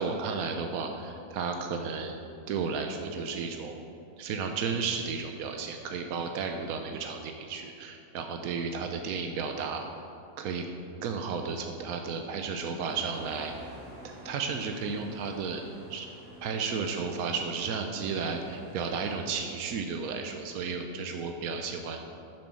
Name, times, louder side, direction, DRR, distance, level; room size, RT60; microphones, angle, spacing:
voice 1, 0.0-3.8 4.2-9.8 10.4-10.6 11.0-13.5 14.0-15.6 15.9-16.1 16.4-22.0, right 5 dB, 85° right, 4 dB, 1.2 m, -33 dB
sound 1, 12.9-19.2, equal, 65° right, 3.3 m, -49 dB
9.6 x 7.6 x 6.2 m, 2.6 s
omnidirectional pair, 1.5 m